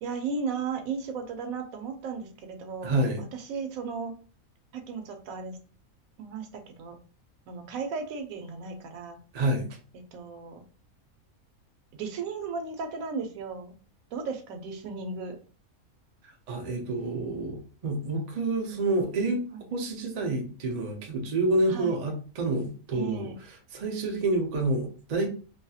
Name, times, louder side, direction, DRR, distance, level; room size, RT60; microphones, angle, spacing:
voice 1, 0.0-4.1 4.7-5.6 6.2-7.0 7.5-9.2 10.1-10.6 12.0-13.7 14.1-15.4 19.5-19.6 21.7-22.0 22.9-23.4, right 5 dB, 75° right, 5 dB, 1.0 m, -35 dB
voice 2, 2.8-3.2 9.3-9.7 16.5-19.4 19.7-23.3 23.7-25.3, right 2 dB, 55° right, 2 dB, 0.4 m, -28 dB
2.7 x 2.6 x 2.3 m, 0.38 s
omnidirectional pair, 1.5 m